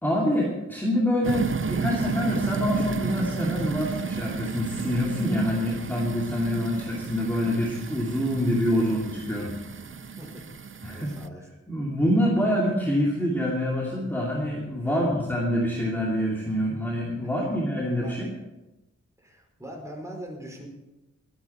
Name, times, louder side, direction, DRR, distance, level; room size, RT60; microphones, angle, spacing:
voice 1, 0.0-9.6 10.8-11.1 11.7-18.3, equal, 5° left, -3 dB, 2.6 m, -26 dB
sound 1, 1.2-11.3, right 5 dB, 40° right, 0.6 m, -32 dB
voice 2, 10.9-11.5 14.8-15.1 18.0-18.2 19.2-20.7, equal, 10° right, -1 dB, 5.1 m, -41 dB
23.0 x 9.5 x 4.3 m, 1.0 s
wide cardioid pair, 100°, 30 cm